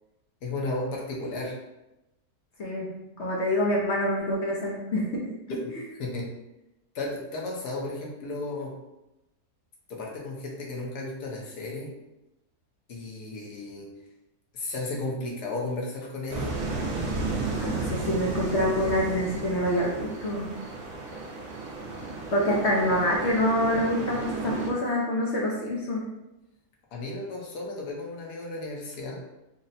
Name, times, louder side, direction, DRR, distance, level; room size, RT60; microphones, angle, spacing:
voice 1, 0.4-1.6 5.5-6.3 6.9-8.7 9.9-11.9 12.9-13.9 14.5-16.5 26.9-29.2, left 2 dB, 75° left, -2 dB, 1.4 m, -34 dB
voice 2, 2.6-5.3 17.6-20.6 22.3-26.1, left 1 dB, 55° left, -3 dB, 0.8 m, -26 dB
sound 1, 16.3-24.7, right 3 dB, 55° right, 0.6 m, -33 dB
4.1 x 2.1 x 4.0 m, 0.95 s
omnidirectional pair, 1.7 m